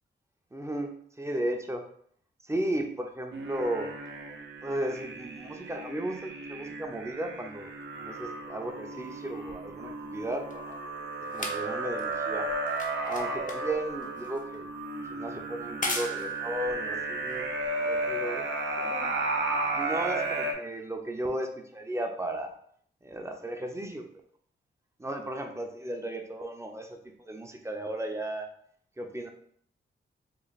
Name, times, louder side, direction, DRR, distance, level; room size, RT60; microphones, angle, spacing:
voice 1, 0.5-1.9 2.4-3.9 4.6-7.7 8.0-10.8 11.3-12.5 13.0-14.7 14.9-17.4 17.9-18.5 18.8-19.2 19.7-22.5 23.0-24.0 25.0-28.5 29.0-29.3, right 1 dB, 15° right, 3 dB, 0.6 m, -35 dB
sound 1, 3.3-20.5, right 2 dB, 65° right, 0.7 m, -34 dB
sound 2, 9.5-18.1 18.9-19.0, left 2 dB, 40° left, 0.6 m, -40 dB
3.1 x 2.2 x 4.0 m, 0.63 s
cardioid pair, 60°, 21 cm